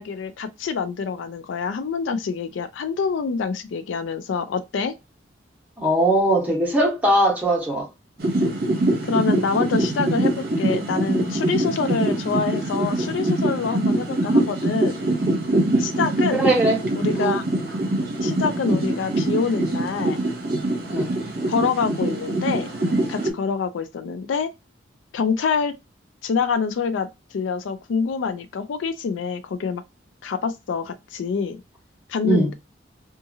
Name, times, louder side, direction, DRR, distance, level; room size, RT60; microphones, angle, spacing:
voice 1, 0.0-4.9 9.0-15.0 15.8-16.4 16.9-17.4 18.2-20.3 21.5-22.7 23.1-24.5 25.1-25.8 26.2-27.1 27.3-29.8 30.2-31.6 32.1-32.5, left 5 dB, 80° left, 0.4 m, -26 dB
voice 2, 5.8-7.9 16.3-16.8 17.1-17.3 20.9-21.1 32.2-32.5, right 1 dB, 10° right, 1.0 m, -20 dB
sound 1, 8.2-23.3, right 2 dB, 55° right, 0.8 m, -23 dB
2.7 x 2.4 x 2.6 m
head